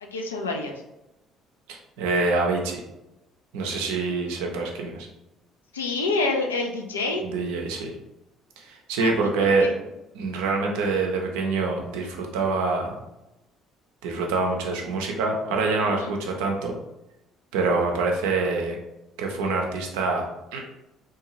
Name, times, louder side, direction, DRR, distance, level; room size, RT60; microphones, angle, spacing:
voice 1, 0.0-0.7 5.7-7.2 9.0-9.1 9.4-9.7 15.8-16.1, left 3 dB, 85° left, 2 dB, 0.3 m, -27 dB
voice 2, 1.7-2.8 3.5-5.1 7.2-7.9 8.6-9.7 10.1-13.0 14.0-16.8 17.5-18.8 19.2-20.2 20.5-20.7, right 3 dB, 75° right, 1 dB, 0.5 m, -25 dB
2.6 x 2.2 x 3.0 m, 0.94 s
hypercardioid pair, 55°, 0 cm